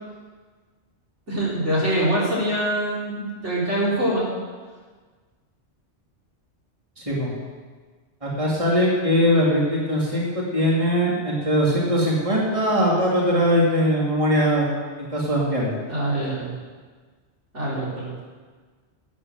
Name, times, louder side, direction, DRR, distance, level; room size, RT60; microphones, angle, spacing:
voice 1, 1.3-4.3 15.9-16.5 17.5-18.1, right 1 dB, 80° right, -7 dB, 4.6 m, -24 dB
voice 2, 7.0-7.3 8.2-14.7 15.0-15.7, equal, 30° right, -5 dB, 2.6 m, -21 dB
13.0 x 8.4 x 7.9 m, 1.5 s
omnidirectional pair, 1.2 m